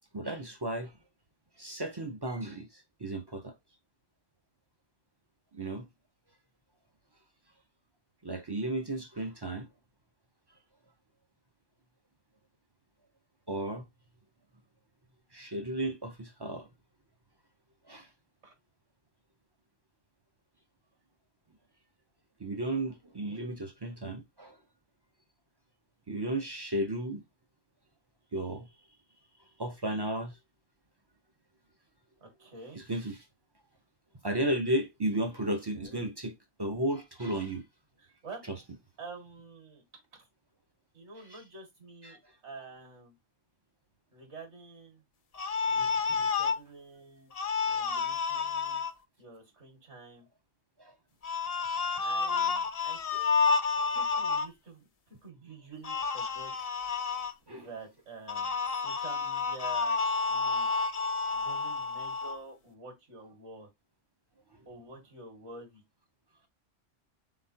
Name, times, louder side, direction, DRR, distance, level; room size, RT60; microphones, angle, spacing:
voice 1, 0.1-0.9 1.6-3.5 5.5-5.9 8.2-9.7 13.5-13.8 15.3-16.7 17.9-18.1 22.4-24.6 26.1-27.2 28.3-28.7 29.6-30.4 32.8-33.2 34.2-36.3 36.6-37.6 42.0-42.2 46.3-46.4 50.8-50.9 57.5-57.7, right 1 dB, 40° right, 0.4 m, -34 dB
voice 2, 32.2-32.8 35.7-36.1 38.0-38.4 39.0-39.8 40.2-40.3 40.9-43.2 44.1-45.0 45.7-47.3 47.7-48.8 49.2-50.3 51.9-53.5 53.9-56.7 57.5-60.0 60.3-60.7 61.3-63.7 64.7-65.8, right 3 dB, 65° right, 2.2 m, -48 dB
sound 1, 45.3-46.6 47.3-48.9 51.2-54.5 55.8-57.3 58.3-62.4, left 5 dB, 50° left, 0.4 m, -30 dB
4.2 x 3.9 x 2.7 m
omnidirectional pair, 1.3 m